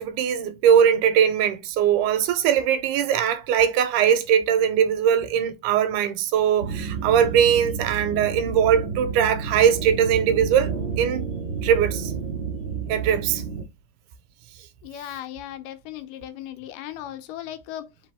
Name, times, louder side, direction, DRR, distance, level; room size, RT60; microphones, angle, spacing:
voice 1, 0.0-11.2 11.6-12.1 12.9-13.4, right 8 dB, 85° right, 2.1 m, -21 dB
sound 1, 6.6-13.6, right 5 dB, 35° right, 1.0 m, -30 dB
voice 2, 14.8-17.9, left 12 dB, 90° left, 2.3 m, -37 dB
4.7 x 3.3 x 3.4 m
omnidirectional pair, 3.7 m